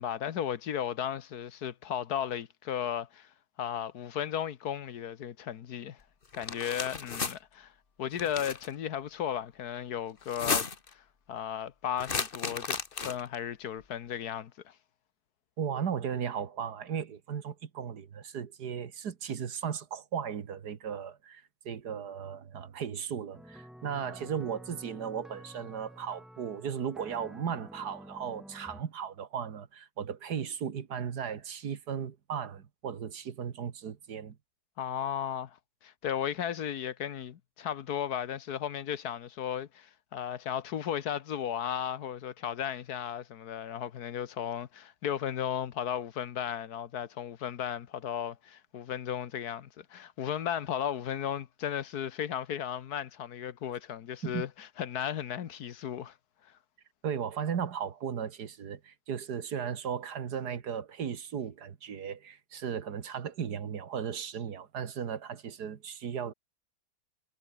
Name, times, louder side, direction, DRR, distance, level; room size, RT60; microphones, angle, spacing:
voice 1, 0.0-3.3 3.6-6.0 6.3-7.7 8.0-12.8 13.0-14.7 34.8-35.6 35.8-56.1, left 9 dB, 75° left, 1.6 m, -35 dB
sound 1, 6.3-7.3 8.1-8.7 10.2-10.9 12.0-13.3, left 5 dB, 35° left, 1.6 m, -33 dB
voice 2, 15.6-34.4 54.2-54.4 57.0-66.3, right 7 dB, 80° right, 2.0 m, -36 dB
sound 2, 23.3-28.8, equal, ahead, 6.8 m, -50 dB
omnidirectional pair, 1.7 m